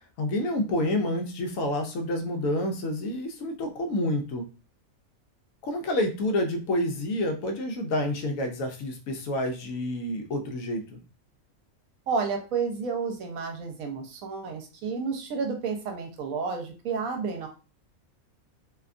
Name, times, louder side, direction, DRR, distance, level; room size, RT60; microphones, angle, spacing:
voice 1, 0.2-4.5 5.6-11.0, left 1 dB, 70° left, 4 dB, 0.9 m, -28 dB
voice 2, 12.1-17.5, right 5 dB, 75° right, 4 dB, 1.0 m, -31 dB
2.7 x 2.2 x 2.4 m, 0.32 s
omnidirectional pair, 1.5 m